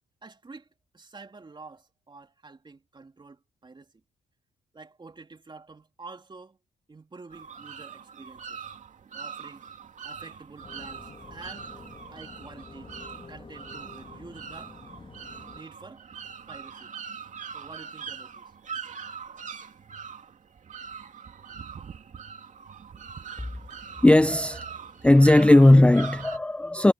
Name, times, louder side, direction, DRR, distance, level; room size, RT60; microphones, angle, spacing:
voice 1, 0.2-0.7 0.9-4.0 4.7-6.6 6.9-8.6 9.1-9.6 10.0-11.7 12.1-12.9 13.3-14.8 15.3-16.9 17.5-18.5, right 3 dB, 30° right, 3.2 m, -48 dB
sound 1, 7.3-26.4, right 6 dB, 50° right, 2.5 m, -42 dB
sound 2, 10.6-15.6, left 4 dB, 30° left, 2.2 m, -48 dB
voice 2, 24.0-24.7 25.0-26.9, left 1 dB, 5° left, 0.5 m, -17 dB
supercardioid pair, 65°, 16 cm